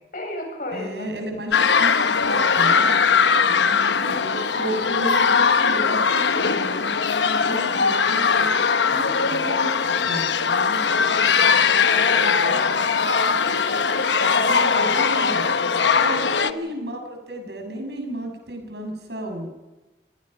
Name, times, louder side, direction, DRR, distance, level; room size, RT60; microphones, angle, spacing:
voice 1, 0.1-1.1 3.6-4.6 11.8-16.7, left 1 dB, 50° left, 3 dB, 7.4 m, -34 dB
voice 2, 0.7-2.9 4.0-6.9 7.4-8.6 8.9-11.2 14.4-15.5 16.0-19.5, right 1 dB, 70° right, 4 dB, 6.7 m, -33 dB
sound 1, 1.5-16.5, left 5 dB, 90° left, 1.0 m, -20 dB
29.0 x 19.0 x 5.5 m, 1.1 s
head